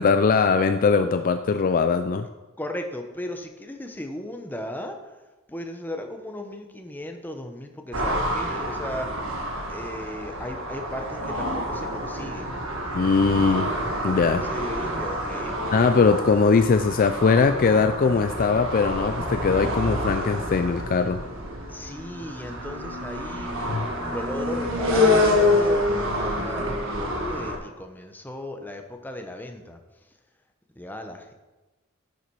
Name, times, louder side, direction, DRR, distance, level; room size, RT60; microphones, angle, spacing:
voice 1, 0.0-2.3 12.9-13.7 14.0-14.4 15.7-21.2 23.7-23.9, left 5 dB, 40° left, 9 dB, 0.3 m, -21 dB
voice 2, 2.6-5.2 5.5-9.2 9.7-12.6 14.2-15.7 21.7-23.5 24.1-29.8 30.8-31.3, left 1 dB, 10° left, 5 dB, 0.8 m, -36 dB
sound 1, 7.9-27.6, left 1 dB, 60° right, 1.5 m, -27 dB
9.9 x 7.0 x 4.6 m, 1.1 s
head